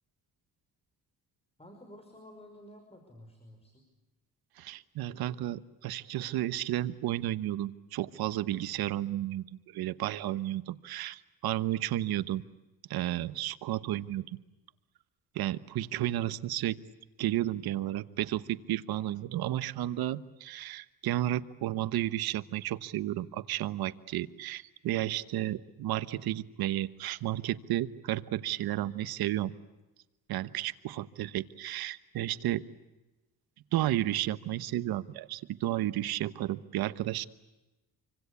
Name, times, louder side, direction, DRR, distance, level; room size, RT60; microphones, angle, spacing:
voice 1, 1.6-3.8, left 1 dB, 15° left, 5 dB, 5.7 m, -52 dB
voice 2, 4.6-12.4 12.9-14.3 15.3-16.8 17.2-29.5 30.3-32.6 33.7-37.2, right 13 dB, 90° right, 14 dB, 1.2 m, -32 dB
27.5 x 25.0 x 8.4 m, 1.1 s
cardioid pair, 100°, 36 cm